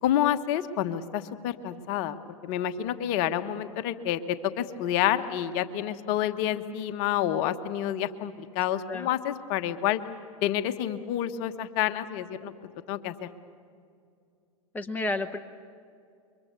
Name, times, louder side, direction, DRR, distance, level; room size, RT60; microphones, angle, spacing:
voice 1, 0.0-2.2 2.4-4.2 4.6-10.0 10.4-12.5 12.9-13.3, left 11 dB, 50° left, 9 dB, 1.3 m, -28 dB
voice 2, 14.7-15.4, left 2 dB, 10° left, 7 dB, 1.0 m, -31 dB
28.5 x 24.0 x 6.9 m, 2.4 s
hypercardioid pair, 105°, 18 cm